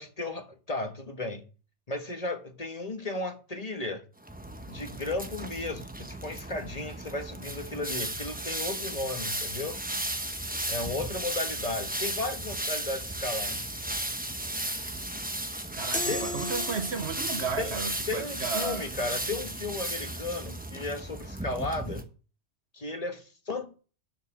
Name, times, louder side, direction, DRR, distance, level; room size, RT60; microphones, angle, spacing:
voice 1, 0.0-1.5 1.9-4.0 4.7-9.8 10.7-13.6 16.1-16.3 17.6-17.8 18.1-22.1 22.7-23.8, left 2 dB, 35° left, 1.4 m, -34 dB
sound 1, 4.2-22.0, right 1 dB, 10° right, 0.9 m, -35 dB
voice 2, 15.7-18.9, right 5 dB, 75° right, 1.4 m, -33 dB
sound 2, 15.9-17.4, left 2 dB, 15° left, 0.3 m, -35 dB
10.5 x 5.5 x 6.4 m
omnidirectional pair, 1.1 m